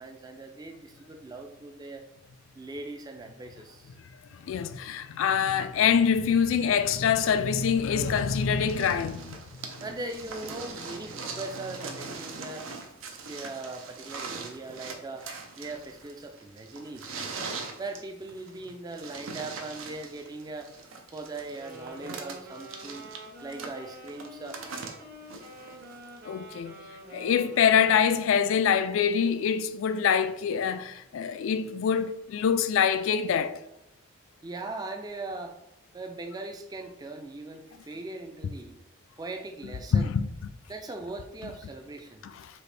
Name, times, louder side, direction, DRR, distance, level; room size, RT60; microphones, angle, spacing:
voice 1, 0.0-2.1 2.5-3.9 5.5-5.6 9.8-12.6 13.1-15.3 15.6-17.4 17.8-20.7 21.1-23.0 23.4-24.6 34.4-35.6 35.9-38.8 39.2-40.1 40.7-42.2, right 2 dB, 20° right, 0.3 m, -40 dB
voice 2, 4.4-9.4 26.3-26.7 27.1-33.6 39.9-40.3, left 7 dB, 85° left, 0.3 m, -25 dB
sound 1, 8.1-26.2 27.2-27.3, right 4 dB, 85° right, 0.6 m, -41 dB
Wind instrument woodwind instrument, 21.6-28.7, right 1 dB, 50° right, 0.9 m, -46 dB
4.1 x 2.8 x 3.3 m
head